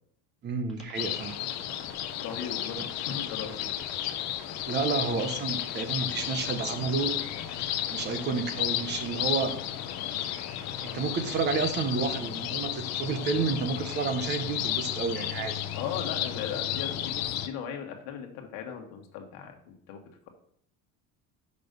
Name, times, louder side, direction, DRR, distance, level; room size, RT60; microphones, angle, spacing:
voice 1, 0.4-1.4 4.7-7.2 7.9-9.5 10.9-15.5, right 5 dB, 30° right, 9 dB, 0.7 m, -30 dB
sound 1, 0.7-11.0, left 3 dB, ahead, 1.7 m, -48 dB
sound 2, 0.9-17.5, left 12 dB, 50° left, 0.6 m, -33 dB
voice 2, 2.2-3.7 15.8-20.0, left 7 dB, 70° left, 3 dB, 1.5 m, -38 dB
6.1 x 5.4 x 5.2 m, 0.67 s
cardioid pair, 175°, 34 cm